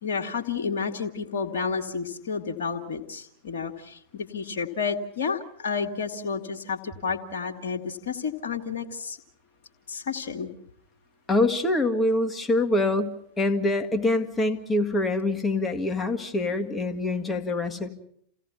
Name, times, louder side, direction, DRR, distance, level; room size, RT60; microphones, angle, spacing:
voice 1, 0.0-9.2 9.9-10.5, left 5 dB, 60° left, 3 dB, 1.8 m, -31 dB
voice 2, 11.3-17.9, left 2 dB, 15° left, 6 dB, 1.8 m, -25 dB
28.5 x 17.0 x 5.8 m, 0.67 s
figure-of-eight pair, 90°, 0 cm